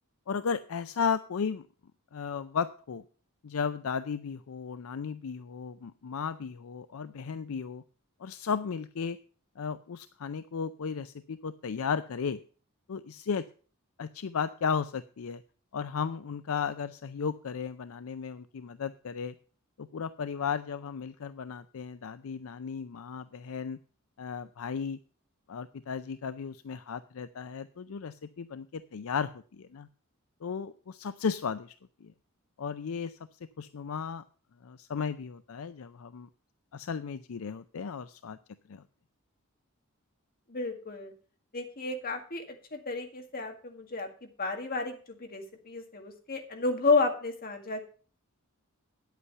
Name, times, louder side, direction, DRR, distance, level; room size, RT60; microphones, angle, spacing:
voice 1, 0.3-1.7 2.1-3.0 3.4-7.8 8.2-9.2 9.6-12.4 12.9-13.4 14.0-15.4 15.7-19.3 19.8-23.8 24.2-25.0 25.5-29.9 30.4-31.7 32.0-32.1 32.6-33.2 33.6-34.2 34.6-36.3 36.7-38.4 38.7-38.8, left 6 dB, 70° left, 13 dB, 0.5 m, -35 dB
voice 2, 40.5-41.1 41.5-47.8, left 3 dB, 45° left, 4 dB, 2.0 m, -31 dB
9.8 x 8.3 x 5.6 m, 0.40 s
head